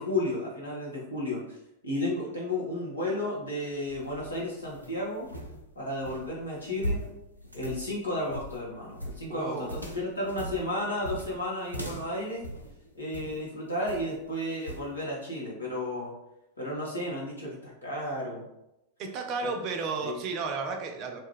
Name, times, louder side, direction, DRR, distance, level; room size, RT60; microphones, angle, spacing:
voice 1, 0.0-1.6 1.8-5.3 5.7-7.0 7.5-12.4 12.9-16.1 16.6-18.5 19.4-19.5 20.0-20.2, left 1 dB, 80° left, -5 dB, 0.8 m, -33 dB
sound 1, 3.7-13.4 13.9-14.2 14.7-14.9, equal, 90° right, 0.4 m, -39 dB
voice 2, 9.3-9.8 19.0-21.2, right 4 dB, 40° right, 3 dB, 0.5 m, -33 dB
2.6 x 2.2 x 3.5 m, 0.88 s
figure-of-eight pair, 90°, 0 cm